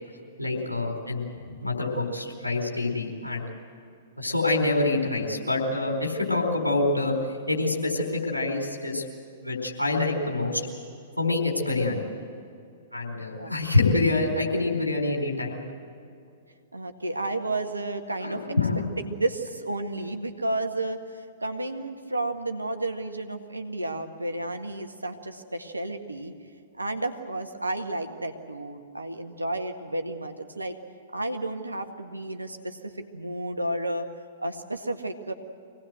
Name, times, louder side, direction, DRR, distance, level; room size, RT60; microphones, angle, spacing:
voice 1, 0.4-3.5 4.2-7.2 7.5-9.0 9.4-10.6 11.2-12.0 12.9-15.6 18.2-18.8, left 2 dB, 85° left, 1 dB, 4.4 m, -26 dB
voice 2, 16.7-18.5 19.0-26.3 26.8-30.8 31.1-34.1 34.4-35.3, right 2 dB, 80° right, 6 dB, 1.8 m, -32 dB
24.5 x 18.5 x 7.8 m, 2.5 s
figure-of-eight pair, 110°, 0 cm